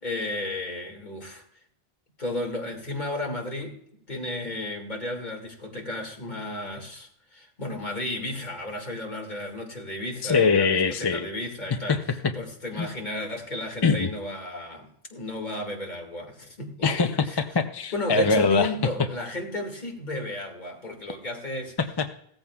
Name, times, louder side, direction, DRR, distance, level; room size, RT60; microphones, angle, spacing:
voice 1, 0.0-1.4 2.2-3.8 4.1-12.0 12.3-17.4 17.9-21.8, left 1 dB, 45° left, 2.3 m, -33 dB
voice 2, 10.2-11.3 11.9-12.0 12.8-12.9 13.8-14.1 16.8-18.7 21.8-22.1, left 4 dB, 30° left, 0.5 m, -23 dB
17.0 x 14.0 x 2.4 m
omnidirectional pair, 1.1 m